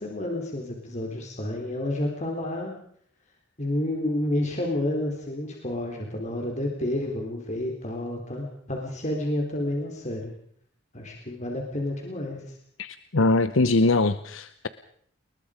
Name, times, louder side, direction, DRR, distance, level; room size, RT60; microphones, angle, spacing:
voice 1, 0.0-2.7 3.6-10.3 10.9-12.6, left 1 dB, 35° left, 0 dB, 3.8 m, -30 dB
voice 2, 12.8-14.7, left 2 dB, 85° left, 12 dB, 0.9 m, -22 dB
30.0 x 21.0 x 5.1 m, 0.66 s
head